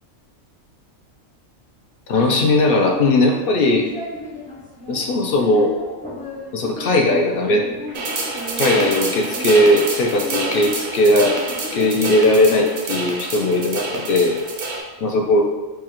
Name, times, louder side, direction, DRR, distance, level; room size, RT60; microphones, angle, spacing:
voice 1, 2.1-3.9 4.9-5.8 6.5-7.6 8.6-11.4 11.7-14.4 15.0-15.4, left 1 dB, 60° left, 1 dB, 0.6 m, -18 dB
sound 1, 2.2-12.0, left 2 dB, 10° left, 0.6 m, -35 dB
sound 2, 7.9-14.8, right 3 dB, 55° right, 0.5 m, -27 dB
4.7 x 2.3 x 2.9 m, 1.2 s
omnidirectional pair, 1.4 m